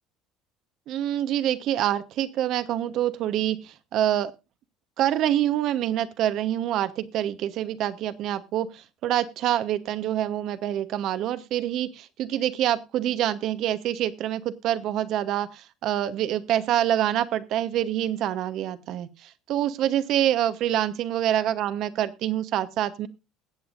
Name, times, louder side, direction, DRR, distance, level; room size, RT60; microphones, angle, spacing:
voice 1, 0.9-4.3 5.0-23.1, right 11 dB, 60° right, 12 dB, 1.0 m, -26 dB
20.5 x 8.0 x 2.6 m, 0.27 s
supercardioid pair, 85°, 0 cm